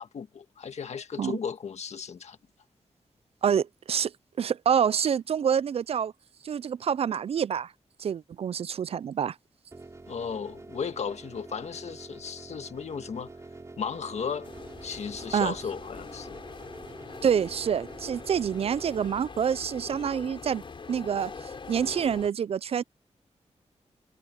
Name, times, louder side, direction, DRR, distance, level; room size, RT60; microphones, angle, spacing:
voice 1, 0.0-2.4 10.1-13.3 13.8-14.5 14.8-16.4, left 6 dB, 70° left, 1.5 m, -35 dB
voice 2, 3.4-4.1 4.4-6.1 6.4-7.7 8.0-9.4 15.3-15.5 17.2-20.6 20.9-22.8, right 8 dB, 55° right, 0.4 m, -27 dB
sound 1, 9.7-19.1, right 3 dB, 25° right, 4.8 m, -46 dB
sound 2, 14.4-22.3, left 5 dB, 45° left, 4.6 m, -43 dB
wide cardioid pair, 160°, 12 cm